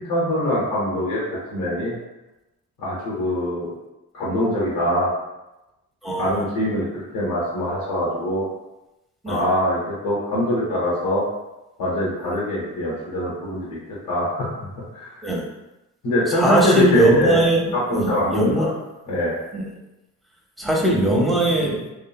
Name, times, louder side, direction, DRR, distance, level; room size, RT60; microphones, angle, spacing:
voice 1, 0.0-2.0 2.8-3.8 4.1-5.1 6.1-8.5 9.3-11.2 11.8-13.8 14.0-15.2 16.0-17.4 17.7-18.7 19.1-19.3, left 1 dB, 85° left, -7 dB, 0.9 m, -23 dB
voice 2, 16.3-18.7 19.5-19.7 20.6-21.8, right 1 dB, ahead, -2 dB, 0.7 m, -20 dB
2.8 x 2.5 x 2.2 m, 0.98 s
supercardioid pair, 45°, 38 cm